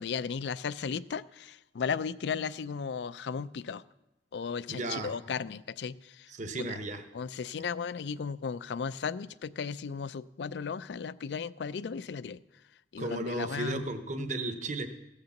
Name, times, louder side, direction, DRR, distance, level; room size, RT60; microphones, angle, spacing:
voice 1, 0.0-3.8 4.3-6.3 6.6-6.7 7.1-12.4 12.9-13.9, left 6 dB, 70° left, 17 dB, 0.4 m, -35 dB
voice 2, 4.7-5.1 6.3-7.0 13.0-14.9, right 2 dB, 45° right, 7 dB, 0.9 m, -34 dB
15.5 x 6.6 x 7.1 m, 0.96 s
head